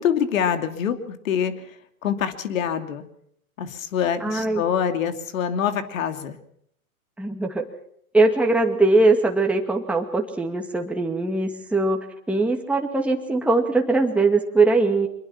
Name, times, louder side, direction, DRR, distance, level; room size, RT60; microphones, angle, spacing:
voice 1, 0.0-1.7 2.0-3.0 3.6-6.4, left 8 dB, 65° left, 8 dB, 2.8 m, -25 dB
voice 2, 4.2-4.6 7.2-7.6 8.1-15.1, right 3 dB, 5° right, 2 dB, 2.3 m, -21 dB
25.5 x 21.5 x 5.8 m, 0.70 s
hypercardioid pair, 120°, 43 cm